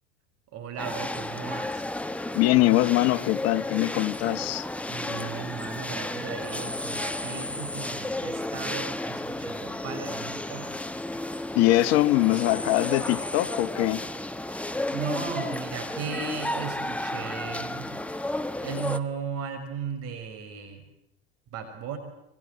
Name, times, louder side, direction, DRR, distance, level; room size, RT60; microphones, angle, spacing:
voice 1, 0.5-1.8 4.9-10.7 14.9-17.9 18.6-20.8 21.5-22.0, right 7 dB, 50° right, 6.0 m, -36 dB
sound 1, 0.8-19.0, left 1 dB, 5° left, 1.4 m, -33 dB
voice 2, 2.3-4.7 5.0-5.3 11.5-14.0, left 17 dB, 55° left, 1.4 m, -23 dB
26.0 x 25.5 x 8.4 m
hypercardioid pair, 95°, 31 cm